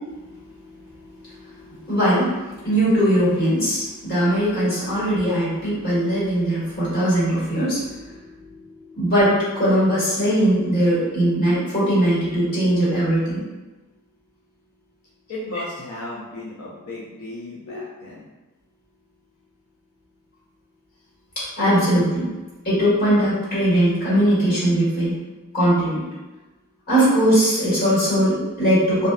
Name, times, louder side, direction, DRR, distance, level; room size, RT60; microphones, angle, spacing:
voice 1, 1.7-2.4 2.6-8.5 8.9-13.5 17.7-17.8 21.3-22.3 22.6-25.2 25.5-26.0 26.9-29.1, right 1 dB, 45° left, -10 dB, 1.4 m, -20 dB
voice 2, 15.3-18.2, left 1 dB, 85° left, -6 dB, 0.4 m, -35 dB
2.5 x 2.3 x 2.2 m, 1.1 s
head